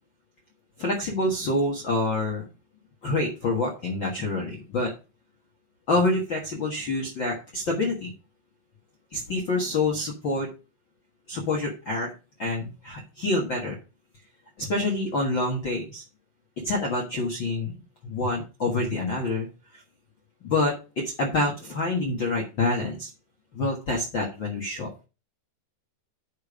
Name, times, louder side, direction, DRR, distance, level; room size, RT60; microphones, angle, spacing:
voice 1, 0.8-2.5 3.0-4.9 5.9-8.1 9.1-10.5 11.3-12.1 12.4-13.8 14.6-16.0 16.6-17.7 18.0-19.5 20.4-20.7 21.2-23.1 23.5-24.9, left 2 dB, 80° left, -2 dB, 1.0 m, -27 dB
9.4 x 5.3 x 4.8 m, 0.31 s
omnidirectional pair, 5.0 m